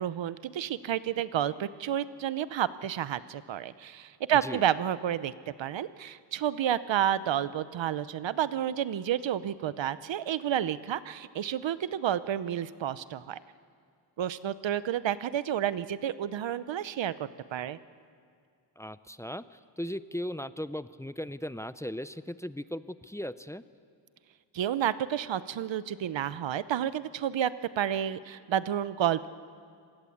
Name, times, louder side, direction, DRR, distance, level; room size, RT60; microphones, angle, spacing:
voice 1, 0.0-5.3 5.6-13.4 14.2-17.8 24.5-27.5 27.8-29.3, right 10 dB, 75° right, 15 dB, 0.8 m, -30 dB
voice 2, 18.8-23.6, equal, 5° left, 14 dB, 0.5 m, -37 dB
26.5 x 18.5 x 8.6 m, 2.3 s
wide cardioid pair, 115°, 45 cm